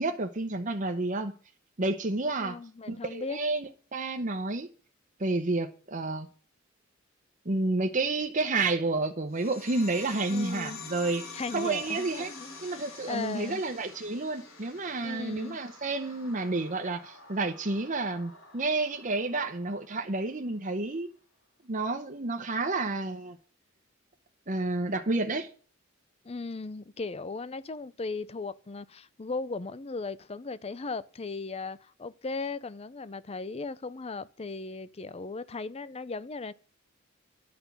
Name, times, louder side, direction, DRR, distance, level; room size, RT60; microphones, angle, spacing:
voice 1, 0.0-1.3 1.8-2.6 2.9-4.7 5.2-6.3 7.4-11.2 11.5-12.3 12.6-21.1 21.7-23.4 24.5-25.5, right 2 dB, 40° right, 0.9 m, -30 dB
voice 2, 2.4-3.4 10.3-10.8 11.3-12.8 13.1-13.6 15.0-15.6 26.2-36.5, left 3 dB, 30° left, 0.6 m, -37 dB
sound 1, 9.3-20.3, left 4 dB, 85° left, 4.1 m, -47 dB
11.5 x 5.5 x 8.3 m
head